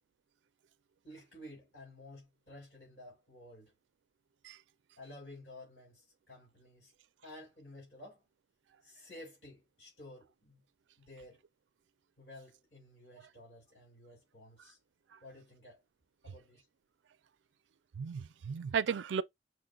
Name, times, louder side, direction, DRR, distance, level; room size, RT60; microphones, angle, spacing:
voice 1, 1.0-3.7 5.0-6.9 7.2-8.2 8.8-10.6 11.0-11.4 12.2-14.8 15.2-15.8 16.2-16.7, left 1 dB, 70° left, 3.8 m, -53 dB
voice 2, 17.9-19.2, right 6 dB, 90° right, 0.4 m, -35 dB
6.2 x 2.2 x 3.7 m
head